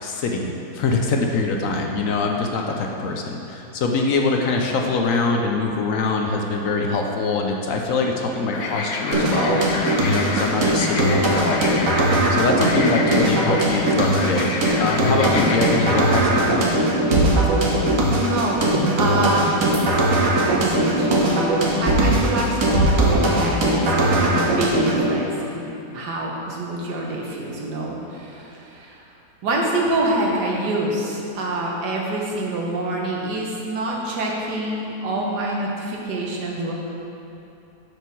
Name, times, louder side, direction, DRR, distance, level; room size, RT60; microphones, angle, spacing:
voice 1, 0.0-9.6 10.0-11.9 12.3-16.6, left 3 dB, 65° left, 1 dB, 1.0 m, -23 dB
sound 1, 8.5-15.9, left 3 dB, 80° left, 1.3 m, -29 dB
sound 2, 9.1-25.1, right 1 dB, 55° right, 1.4 m, -20 dB
voice 2, 18.1-18.6 19.0-19.9 20.2-25.7 25.9-29.0 29.4-36.7, right 1 dB, 90° right, -2 dB, 1.8 m, -26 dB
7.6 x 5.0 x 6.2 m, 2.9 s
omnidirectional pair, 1.7 m